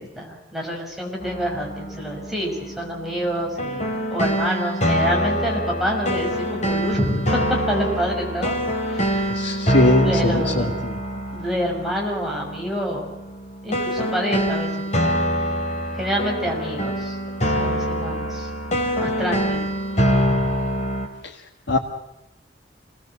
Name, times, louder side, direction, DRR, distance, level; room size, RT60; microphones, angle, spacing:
voice 1, 0.0-7.2 7.7-8.5 8.9-9.3 10.0-10.8 11.3-13.1 13.6-15.2 16.0-17.2 17.5-18.5 19.0-19.6, equal, ahead, -2 dB, 5.9 m, -27 dB
sound 1, 1.2-21.1, equal, 40° left, 3.6 m, -25 dB
voice 2, 9.3-11.0 21.7-21.8, left 1 dB, 65° left, -1 dB, 1.9 m, -21 dB
27.0 x 19.0 x 7.7 m, 0.92 s
head